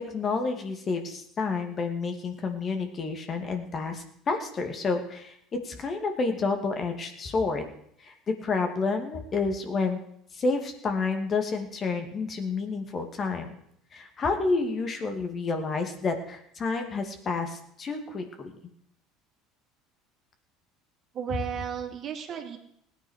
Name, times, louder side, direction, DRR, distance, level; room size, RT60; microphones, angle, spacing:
voice 1, 0.0-7.6 8.0-10.0 10.3-13.5 13.9-18.5 21.3-21.4, left 4 dB, 40° left, 5 dB, 2.5 m, -29 dB
voice 2, 21.1-22.6, right 8 dB, 50° right, 4 dB, 2.7 m, -34 dB
17.5 x 9.4 x 6.5 m, 0.72 s
hypercardioid pair, 70°, 0 cm